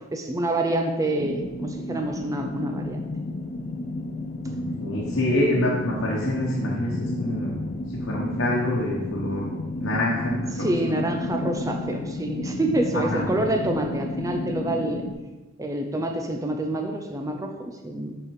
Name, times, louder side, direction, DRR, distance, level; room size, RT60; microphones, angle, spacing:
voice 1, 0.0-3.1 10.6-15.0 15.6-18.2, right 1 dB, 15° right, 3 dB, 0.5 m, -27 dB
sound 1, 1.2-15.1, left 2 dB, 35° left, 0.5 m, -32 dB
voice 2, 4.8-7.6 7.9-9.5 9.8-11.0 12.9-13.2, left 1 dB, 85° left, -4 dB, 1.2 m, -26 dB
7.4 x 4.9 x 4.7 m, 1.2 s
head